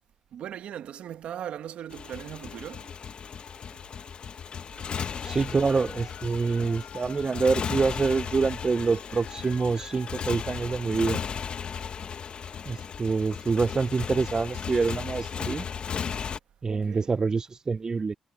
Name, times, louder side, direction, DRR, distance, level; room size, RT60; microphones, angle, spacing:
voice 1, 0.3-2.9 16.7-17.1, right 10 dB, 75° right, 1.4 m, -39 dB
Motorcycle, 1.9-16.4, left 7 dB, 55° left, 1.0 m, -35 dB
sound 1, 5.2-10.6, left 11 dB, 75° left, 7.2 m, -47 dB
voice 2, 5.2-11.2 12.7-15.7 16.6-18.1, right 4 dB, 30° right, 0.5 m, -26 dB
cardioid pair, 85°, 2 cm